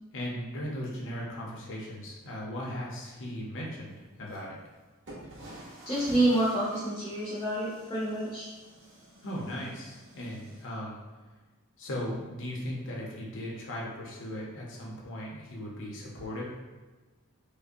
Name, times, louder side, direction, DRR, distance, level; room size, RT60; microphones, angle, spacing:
voice 1, 0.1-4.6 9.2-11.0 11.8-16.5, equal, 60° left, -3 dB, 0.7 m, -37 dB
sound 1, 4.3-4.4 5.1-10.6, right 1 dB, 55° right, 1.1 m, -49 dB
voice 2, 5.9-8.5, right 1 dB, 15° left, -7 dB, 0.7 m, -28 dB
5.1 x 2.1 x 2.6 m, 1.3 s
head